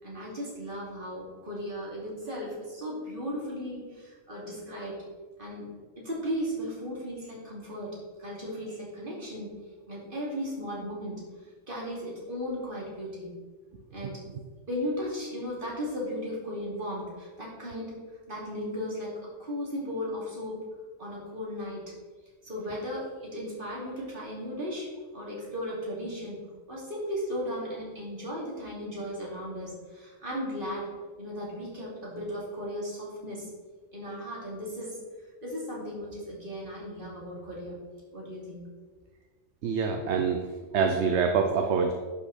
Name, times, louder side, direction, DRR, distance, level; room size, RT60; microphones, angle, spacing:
voice 1, 0.0-5.0 5.4-5.6 6.0-9.5 9.9-11.2 11.7-13.3 13.9-14.2 14.7-17.9 18.3-19.1 19.4-20.6 21.0-21.8 22.4-24.9 25.1-26.4 26.7-30.9 31.2-33.5 33.9-35.0 35.4-37.8 38.1-38.6, equal, 40° right, -5 dB, 3.0 m, -36 dB
voice 2, 39.6-40.4 40.7-41.9, right 5 dB, 65° right, 4 dB, 0.9 m, -25 dB
11.0 x 5.9 x 4.2 m, 1.4 s
omnidirectional pair, 1.3 m